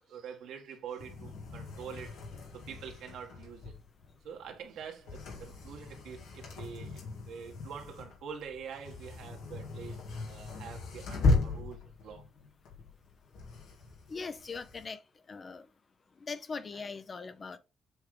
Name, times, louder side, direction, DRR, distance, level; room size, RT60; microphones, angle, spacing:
voice 1, 0.1-2.2 2.5-3.7 4.2-10.0 10.3-12.2 16.7-16.8, right 7 dB, 80° right, 1.5 m, -45 dB
sound 1, 1.0-14.8, left 3 dB, 85° left, 1.8 m, -37 dB
voice 2, 14.1-15.0 15.3-15.7 16.2-17.6, left 4 dB, 35° left, 0.7 m, -40 dB
7.2 x 3.6 x 3.7 m
cardioid pair, 90°, 0 cm